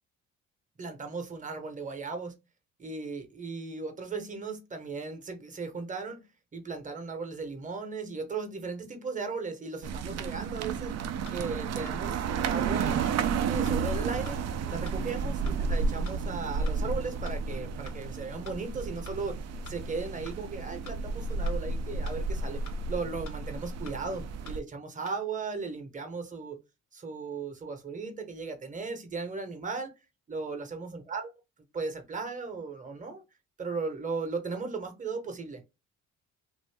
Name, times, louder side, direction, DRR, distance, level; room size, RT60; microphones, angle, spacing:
voice 1, 0.8-2.3 2.8-6.2 6.5-10.9 11.3-13.0 13.5-14.4 14.7-19.4 19.7-22.6 22.9-26.6 26.9-29.9 30.3-31.3 31.7-33.2 33.6-35.6, right 4 dB, 25° right, 0.9 m, -36 dB
sound 1, 9.8-24.6, right 5 dB, 60° right, 0.4 m, -32 dB
sound 2, 11.3-11.4 11.9-12.0 12.5-12.6 13.1-13.2 13.7-13.8 14.3-14.4 14.9-15.0 15.5-15.6 16.1-16.2 16.7-16.8 17.3-17.4 17.9-18.0 18.5-18.6 19.1-19.2 19.7-19.8 20.3-20.4 20.9-21.0 21.5-21.6 22.1-22.2 22.7-22.8 23.3-23.4 23.9-24.0 24.5-24.6 25.1-25.2, left 5 dB, 65° left, 0.8 m, -47 dB
2.6 x 2.5 x 3.3 m
cardioid pair, 90°, 30 cm